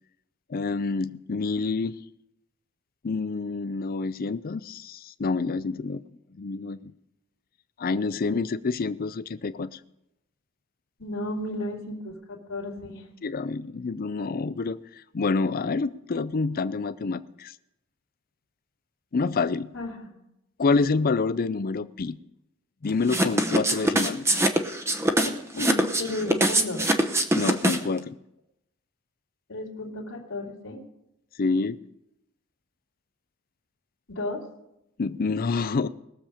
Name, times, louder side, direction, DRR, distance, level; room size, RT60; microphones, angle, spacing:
voice 1, 0.5-1.9 3.0-6.0 6.4-6.9 7.8-9.8 13.2-14.8 15.1-17.5 19.1-19.7 20.6-22.2 22.8-24.4 27.4-28.2 31.4-31.8 35.0-35.9, left 4 dB, 45° left, 15 dB, 0.5 m, -27 dB
voice 2, 11.0-13.1 19.7-20.1 25.2-26.9 29.5-30.8 34.1-34.4, left 2 dB, 80° left, -3 dB, 2.5 m, -34 dB
sound 1, 23.1-28.0, right 1 dB, 15° right, 0.9 m, -23 dB
21.0 x 7.2 x 5.0 m, 0.85 s
head